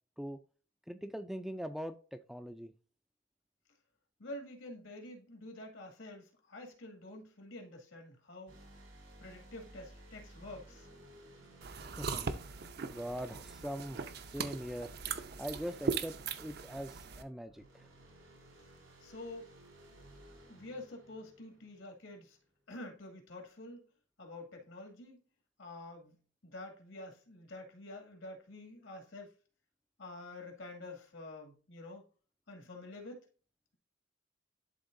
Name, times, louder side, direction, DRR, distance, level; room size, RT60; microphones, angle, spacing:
voice 1, 0.9-2.7 12.0-12.6 12.9-14.0 14.3-14.9 15.4-17.9, equal, ahead, 0.3 m, -42 dB
voice 2, 4.2-8.6 9.2-10.9 19.0-19.5 20.5-22.4 22.7-23.9 24.2-25.2 25.6-29.3 30.0-32.1 32.5-33.3, left 2 dB, 80° left, 2.2 m, -48 dB
sound 1, 8.5-13.9 17.4-22.2, right 1 dB, 85° right, 2.6 m, -58 dB
sound 2, 11.6-17.2, right 5 dB, 50° right, 0.6 m, -39 dB
11.5 x 3.9 x 2.6 m
head